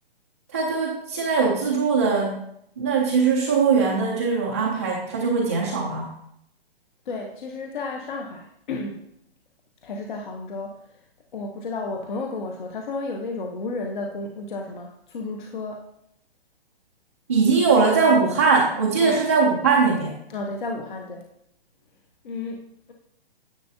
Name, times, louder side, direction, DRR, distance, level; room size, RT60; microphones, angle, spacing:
voice 1, 0.5-2.4 2.8-6.1 17.3-20.1, right 5 dB, 15° right, -6 dB, 0.5 m, -21 dB
voice 2, 7.1-9.1 9.8-11.0 11.3-15.8 19.0-19.2 20.3-21.2 22.2-22.9, left 3 dB, 50° left, 2 dB, 1.0 m, -32 dB
10.0 x 6.9 x 2.7 m, 0.73 s
hypercardioid pair, 175°, 32 cm